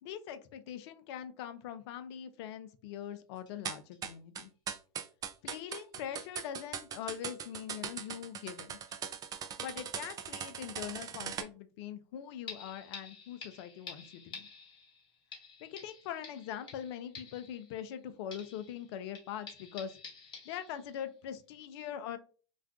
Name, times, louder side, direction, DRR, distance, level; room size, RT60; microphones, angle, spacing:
voice 1, 0.0-4.5 5.4-8.8 9.6-14.5 15.6-19.9 20.4-22.2, left 9 dB, 60° left, 11 dB, 0.5 m, -42 dB
sound 1, 3.0-3.1 3.5-3.6 3.9-4.0 4.4-4.5 5.3-5.4 5.7-5.9 6.1-6.3 6.6-6.7 7.0-7.2 8.0-8.1 8.5-9.0 9.3-9.4 9.8-9.9 12.5-18.0 18.3-21.1 21.5-21.6, left 5 dB, 30° left, 1.1 m, -51 dB
sound 2, 3.7-11.4, right 8 dB, 25° right, 0.3 m, -40 dB
2.4 x 2.2 x 3.4 m, 0.37 s
hypercardioid pair, 100°, 15 cm